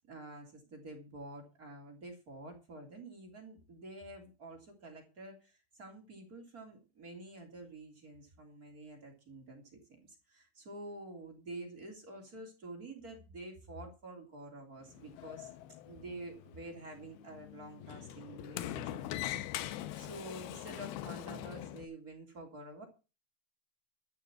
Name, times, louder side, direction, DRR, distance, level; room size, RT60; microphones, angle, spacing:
voice 1, 0.1-9.6 10.3-15.5 15.9-22.9, right 2 dB, 25° right, 2 dB, 2.9 m, -48 dB
Sliding door, 14.8-21.9, left 13 dB, 80° left, 2.6 m, -43 dB
13.0 x 6.3 x 7.4 m, 0.32 s
omnidirectional pair, 4.6 m